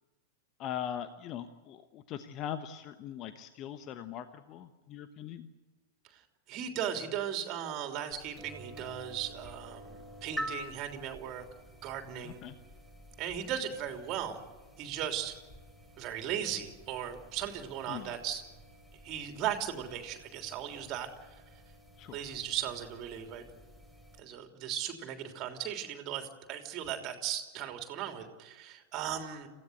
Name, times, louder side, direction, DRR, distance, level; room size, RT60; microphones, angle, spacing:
voice 1, 0.6-5.5 12.2-12.6 17.9-18.1 22.0-22.2, left 9 dB, 35° left, 11 dB, 1.1 m, -41 dB
voice 2, 6.5-11.4 11.8-12.4 13.2-14.4 14.8-15.4 16.0-18.4 19.0-21.4 22.1-23.4 24.2-29.5, right 9 dB, 35° right, 6 dB, 3.2 m, -37 dB
sound 1, 8.1-24.2, equal, 5° left, 6.1 m, -49 dB
27.5 x 16.5 x 8.0 m, 1.2 s
figure-of-eight pair, 90°, 0 cm